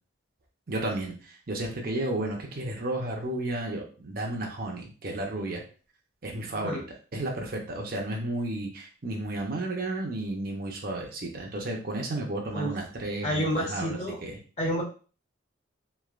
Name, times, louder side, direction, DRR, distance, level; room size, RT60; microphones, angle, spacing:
voice 1, 0.7-5.6 6.2-6.8 7.1-14.3, right 2 dB, 50° right, 0 dB, 0.7 m, -32 dB
voice 2, 13.2-14.2 14.6-14.8, equal, 35° left, -5 dB, 1.0 m, -29 dB
3.2 x 2.6 x 2.4 m, 0.38 s
head